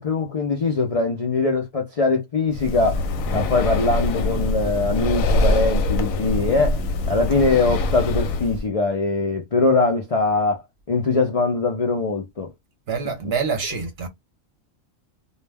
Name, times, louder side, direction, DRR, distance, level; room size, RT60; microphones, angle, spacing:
voice 1, 0.0-3.0 3.3-6.8 7.1-10.6 10.9-12.5 13.2-13.3, left 3 dB, 70° left, 0.3 m, -22 dB
Breathing, 2.5-8.6, left 2 dB, 85° left, 1.0 m, -23 dB
voice 2, 12.9-14.1, right 5 dB, 55° right, 0.8 m, -26 dB
2.4 x 2.1 x 3.3 m
omnidirectional pair, 1.4 m